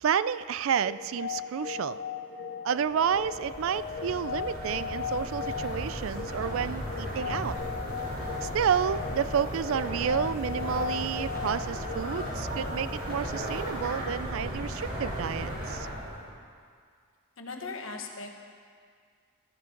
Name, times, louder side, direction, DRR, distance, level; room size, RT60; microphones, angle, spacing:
voice 1, 0.0-2.0 2.6-7.6 8.4-15.9, right 8 dB, 70° right, 16 dB, 0.3 m, -30 dB
sound 1, 0.8-13.6, left 7 dB, 45° left, 0.6 m, -38 dB
sound 2, 2.8-16.3, equal, 45° right, 4.2 m, -36 dB
voice 2, 17.4-18.5, left 3 dB, 70° left, 2 dB, 1.3 m, -39 dB
15.5 x 13.0 x 3.9 m, 2.1 s
head